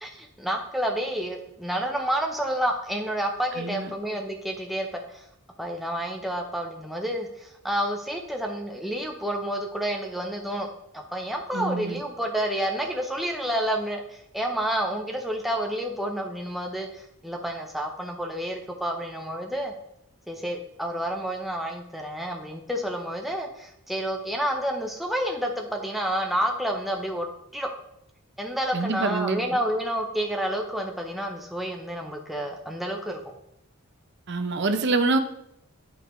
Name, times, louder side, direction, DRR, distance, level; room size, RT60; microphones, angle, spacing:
voice 1, 0.0-5.2 5.6-10.7 10.9-19.7 20.3-27.7 28.4-33.2, equal, ahead, 1 dB, 0.7 m, -29 dB
voice 2, 3.6-3.9 11.5-12.0 28.7-29.4 34.3-35.2, right 3 dB, 50° right, 7 dB, 0.6 m, -25 dB
8.3 x 5.5 x 3.1 m, 0.78 s
head